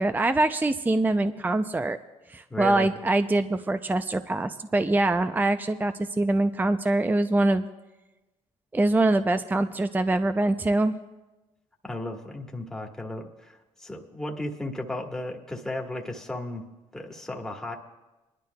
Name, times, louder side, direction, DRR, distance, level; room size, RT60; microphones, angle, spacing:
voice 1, 0.0-2.0 2.3-7.7 8.7-11.0, right 2 dB, 15° right, 10 dB, 0.5 m, -24 dB
voice 2, 2.5-2.9 11.8-16.6 16.9-17.7, left 1 dB, 5° left, 0 dB, 1.5 m, -34 dB
24.5 x 11.5 x 2.3 m, 1.1 s
supercardioid pair, 70°, 13 cm